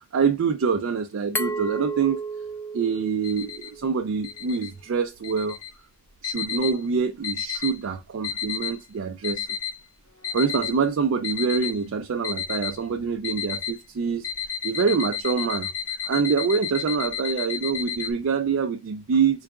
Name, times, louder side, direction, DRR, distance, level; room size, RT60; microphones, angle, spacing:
voice 1, 0.0-2.2 2.7-5.6 6.2-9.5 10.3-14.3 14.6-15.7 16.0-19.4, right 5 dB, 75° right, 0.4 m, -25 dB
Glass, 1.4-4.1, right 2 dB, 10° left, 0.3 m, -32 dB
sound 1, 3.2-3.7 4.2-4.7 5.2-5.7 6.2-6.8 7.2-7.8 8.2-8.8 9.2-9.8 10.2-10.8 11.2-11.8 12.2-12.8 13.2-13.8 14.2-18.1, left 8 dB, 75° left, 0.9 m, -32 dB
3.9 x 2.3 x 3.2 m
head